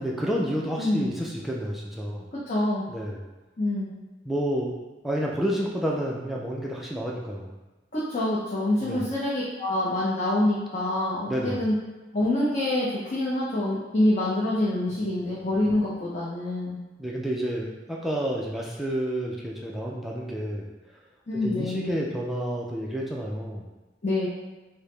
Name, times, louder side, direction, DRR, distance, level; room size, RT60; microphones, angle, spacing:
voice 1, 0.0-2.3 2.9-3.2 4.3-4.7 5.0-7.5 8.8-9.1 11.3-11.6 17.0-20.7 21.4-23.6, equal, ahead, -3 dB, 0.3 m, -30 dB
voice 2, 0.8-1.1 2.5-2.9 3.6-3.9 7.9-11.7 12.1-16.8 21.3-22.0 24.0-24.3, left 1 dB, 40° left, -8 dB, 0.7 m, -26 dB
4.6 x 2.0 x 3.2 m, 1.1 s
head